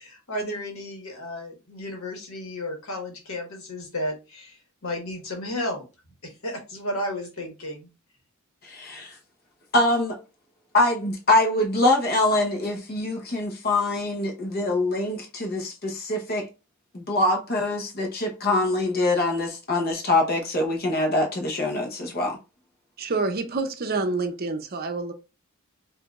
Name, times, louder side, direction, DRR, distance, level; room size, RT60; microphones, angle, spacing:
voice 1, 0.0-5.9 6.2-7.9, left 1 dB, 85° left, 1.4 m, -33 dB
voice 2, 8.6-9.1 9.7-10.2 10.7-16.5 16.9-22.4, left 2 dB, 45° left, 0.9 m, -24 dB
voice 3, 23.0-25.1, right 3 dB, 45° right, 0.6 m, -27 dB
4.9 x 2.6 x 2.4 m
head